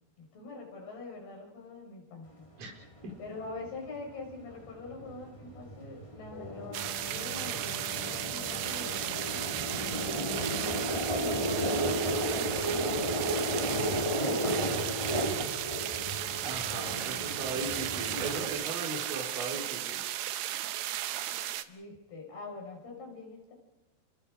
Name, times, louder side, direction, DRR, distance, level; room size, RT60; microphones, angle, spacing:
voice 1, 0.2-2.3 3.2-10.6 11.2-15.1 16.7-17.3 21.7-23.5, left 3 dB, 70° left, -1 dB, 7.9 m, -44 dB
sound 1, 3.0-3.1 3.5-18.4, equal, 10° left, 2.8 m, -34 dB
Wind instrument woodwind instrument, 6.3-13.9, left 2 dB, 50° left, 7.7 m, -48 dB
sound 2, 6.7-21.6, right 13 dB, 75° right, 2.7 m, -35 dB
voice 2, 16.4-20.0, right 3 dB, 55° right, -1 dB, 6.1 m, -37 dB
29.0 x 25.0 x 5.1 m, 0.97 s
omnidirectional pair, 4.8 m